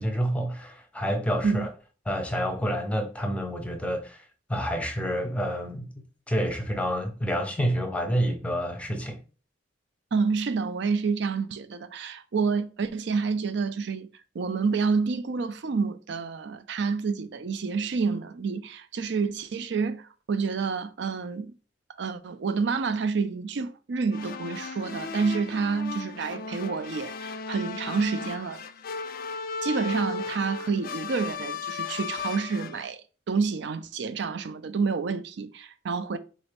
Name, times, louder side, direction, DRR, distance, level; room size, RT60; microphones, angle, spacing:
voice 1, 0.0-1.7 2.1-4.2 4.5-5.9 6.3-9.2, equal, 5° left, 0.6 m, -28 dB
voice 2, 10.1-14.1 14.3-21.6 22.0-28.6 29.6-33.0 33.3-36.2, right 5 dB, 65° right, 0.4 m, -28 dB
sound 1, 24.1-32.9, left 5 dB, 50° left, 0.3 m, -36 dB
4.0 x 2.6 x 3.4 m
head